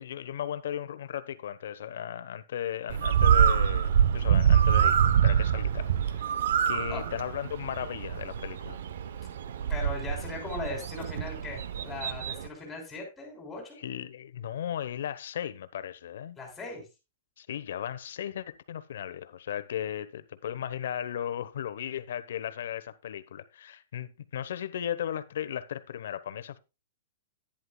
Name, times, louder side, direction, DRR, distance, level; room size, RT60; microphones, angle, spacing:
voice 1, 0.0-6.3 6.6-8.8 13.8-16.4 17.4-26.6, left 10 dB, 65° left, 0.9 m, -36 dB
Bird, 2.9-12.5, right 8 dB, 60° right, 0.8 m, -25 dB
voice 2, 9.7-13.8 16.4-16.9, left 3 dB, 10° left, 3.4 m, -39 dB
11.0 x 10.0 x 2.2 m
hypercardioid pair, 175°, 0 cm